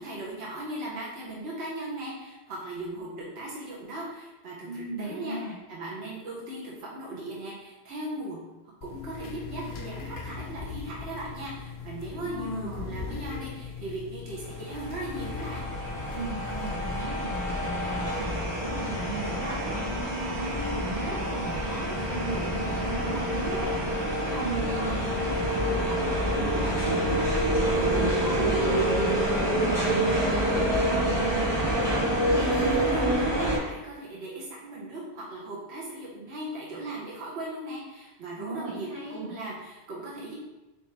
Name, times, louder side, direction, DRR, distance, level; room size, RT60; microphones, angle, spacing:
voice 1, 0.0-8.4 8.8-15.7 32.4-40.4, right 1 dB, 75° right, -4 dB, 1.2 m, -38 dB
voice 2, 4.6-5.5 12.2-12.9 16.1-19.8 20.1-26.0 26.3-31.3 38.4-39.3, right 2 dB, 45° right, -7 dB, 1.6 m, -36 dB
sound 1, 8.8-17.0, left 6 dB, 60° left, 0.7 m, -40 dB
sound 2, 14.6-33.6, equal, 25° right, 1.4 m, -27 dB
4.6 x 3.0 x 3.3 m, 1.1 s
omnidirectional pair, 1.1 m